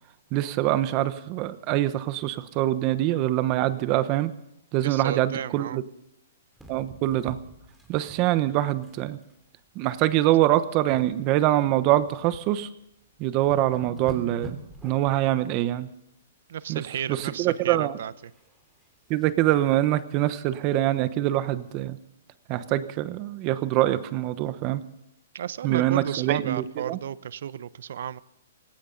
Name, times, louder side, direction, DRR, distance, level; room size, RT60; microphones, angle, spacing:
voice 1, 0.3-4.3 4.7-5.8 6.7-7.4 7.9-9.2 9.7-12.7 13.2-14.6 14.8-15.9 16.7-16.8 17.1-18.0 19.1-22.0 22.5-24.8 25.6-27.0, right 14 dB, 30° right, 13 dB, 1.0 m, -24 dB
voice 2, 4.8-5.8 16.5-18.1 25.3-28.2, right 9 dB, 65° right, 18 dB, 0.8 m, -33 dB
sound 1, 6.5-9.0 9.2-9.4 9.9-10.3 10.6-12.5 12.9-13.0 13.3-15.2 17.0-17.6 17.9-19.4 19.8-19.9 20.2-20.3 20.7-20.8, right 2 dB, ahead, 3.0 m, -46 dB
18.5 x 17.5 x 4.0 m, 0.81 s
hypercardioid pair, 150°, 0 cm